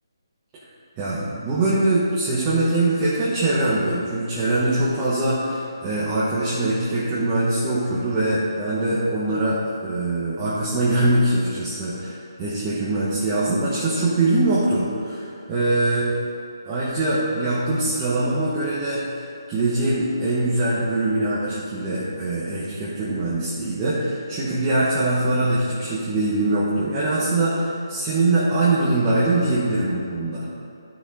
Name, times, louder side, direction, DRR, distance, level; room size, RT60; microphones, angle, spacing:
voice 1, 1.0-16.0 16.6-19.1 19.5-30.5, right 2 dB, 15° right, -10 dB, 1.1 m, -22 dB
12.0 x 6.3 x 4.1 m, 2.7 s
hypercardioid pair, 175°, 2 cm